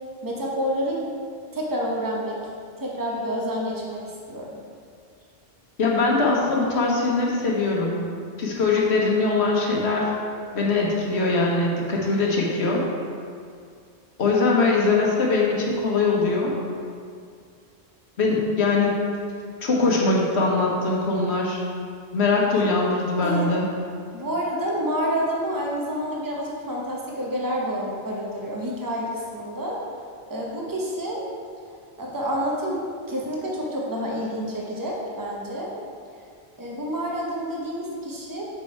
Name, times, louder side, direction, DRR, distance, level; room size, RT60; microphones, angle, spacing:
voice 1, 0.2-1.0 1.5-2.4 2.8-4.0 4.3-4.5 23.2-23.5 24.1-29.8 30.3-31.2 32.0-35.7 36.6-38.4, equal, 20° right, -3 dB, 1.0 m, -28 dB
voice 2, 5.8-8.0 8.4-10.1 10.5-12.8 14.2-16.5 18.2-19.0 19.6-21.6 22.1-23.7, left 3 dB, 75° left, -2 dB, 1.4 m, -22 dB
6.2 x 5.4 x 4.5 m, 2.2 s
omnidirectional pair, 1.1 m